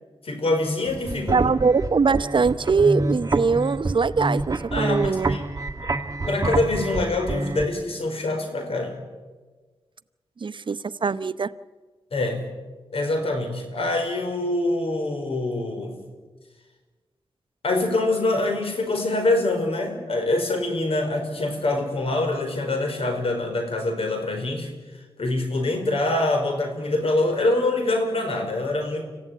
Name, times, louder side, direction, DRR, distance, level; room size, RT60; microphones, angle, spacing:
voice 1, 0.2-1.4 4.7-5.4 6.3-9.0 12.1-12.4 12.9-15.9 17.6-24.7 25.2-29.1, left 2 dB, 75° left, 5 dB, 4.8 m, -25 dB
sound 1, 0.9-7.6, right 2 dB, 35° right, 1.8 m, -27 dB
voice 2, 1.3-5.4 10.4-11.5, right 5 dB, 55° right, 15 dB, 0.8 m, -22 dB
26.0 x 15.5 x 9.4 m, 1.3 s
cardioid pair, 60°, 10 cm